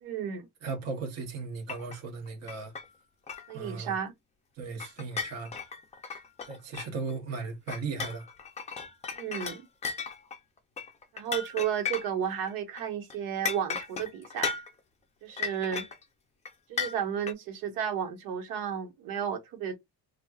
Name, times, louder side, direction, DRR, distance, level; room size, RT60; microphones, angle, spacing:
voice 1, 0.0-0.5 3.5-4.1 9.1-9.7 11.1-14.5 15.2-15.8 16.7-19.8, right 8 dB, 75° right, 1.2 m, -33 dB
voice 2, 0.6-2.7 3.5-3.9 4.6-5.5 6.4-8.3, right 4 dB, 45° right, 1.1 m, -37 dB
sound 1, 1.7-2.0 2.3-2.9 3.3-3.5 3.9-4.0 4.8-7.1 7.7-12.5 12.8-12.9 13.1-13.2 13.4-14.8 15.4-16.0 16.5-16.6 16.8-17.3, left 6 dB, 20° left, 0.5 m, -35 dB
4.2 x 2.4 x 2.3 m
cardioid pair, 165°, 36 cm